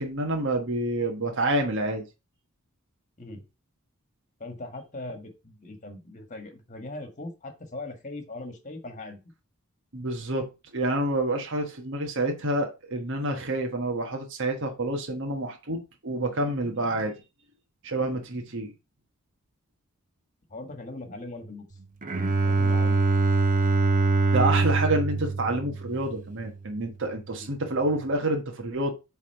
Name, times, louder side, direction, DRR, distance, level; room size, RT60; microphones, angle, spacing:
voice 1, 0.0-2.0 9.9-17.1 17.8-18.7 24.3-28.9, right 1 dB, 60° right, 1.4 m, -28 dB
voice 2, 4.4-9.2 20.5-21.6 22.4-23.1 27.3-27.5, left 2 dB, 35° left, 1.6 m, -40 dB
Bowed string instrument, 22.0-26.5, right 3 dB, 40° right, 0.8 m, -24 dB
8.3 x 3.6 x 4.5 m
head